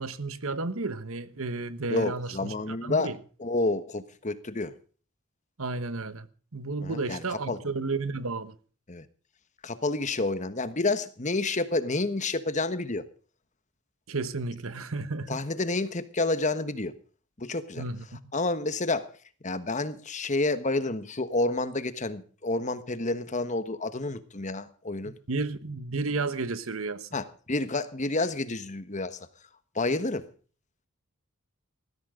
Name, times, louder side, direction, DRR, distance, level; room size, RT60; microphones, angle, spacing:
voice 1, 0.0-3.2 5.6-6.3 6.5-8.5 14.1-15.4 17.8-18.0 25.3-27.1, right 3 dB, 75° right, 1.3 m, -32 dB
voice 2, 1.9-3.1 3.4-4.7 6.8-7.6 8.9-9.0 9.6-13.1 15.3-16.9 17.4-17.8 18.3-19.1 19.4-25.2 27.1-29.2 29.7-30.3, left 2 dB, 35° left, 1.3 m, -29 dB
18.5 x 15.0 x 3.8 m
head